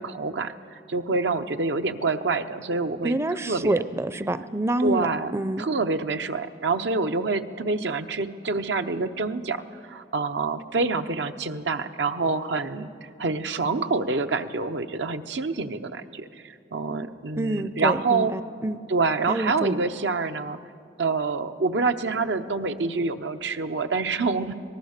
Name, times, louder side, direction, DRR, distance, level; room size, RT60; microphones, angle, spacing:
voice 1, 0.0-3.2 3.5-3.8 4.8-5.3 5.6-18.3 18.9-20.6 21.0-24.5, right 3 dB, 85° right, 8 dB, 0.9 m, -27 dB
voice 2, 3.0-5.1 5.3-5.7 17.4-18.8 19.3-19.8, right 1 dB, 15° right, 13 dB, 0.4 m, -27 dB
25.0 x 18.5 x 6.6 m, 2.3 s
head